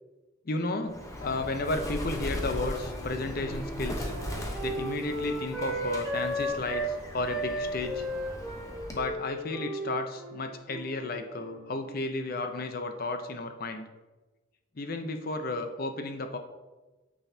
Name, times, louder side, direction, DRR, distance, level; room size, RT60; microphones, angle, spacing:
voice 1, 0.4-4.1 4.6-8.0 8.9-13.9 14.8-16.4, left 2 dB, 45° left, 7 dB, 0.6 m, -33 dB
Bird, 0.9-9.2, equal, 15° left, 0.8 m, -38 dB
Wind instrument woodwind instrument, 2.9-6.9 7.2-11.7, right 1 dB, ahead, 1.3 m, -35 dB
9.0 x 6.3 x 2.8 m, 1.2 s
head